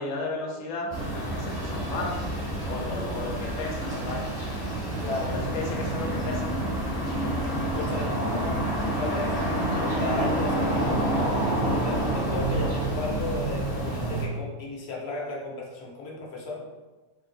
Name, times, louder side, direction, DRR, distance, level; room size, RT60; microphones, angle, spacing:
voice 1, 0.0-2.1 2.7-4.2 5.3-6.7, left 3 dB, 90° left, -1 dB, 1.0 m, -34 dB
sound 1, 0.9-14.2, right 1 dB, 30° left, 0.7 m, -28 dB
voice 2, 5.0-5.6 7.7-9.4 9.8-10.9 11.6-16.6, left 2 dB, 60° left, -2 dB, 0.8 m, -34 dB
3.3 x 2.5 x 2.6 m, 1.2 s
omnidirectional pair, 1.3 m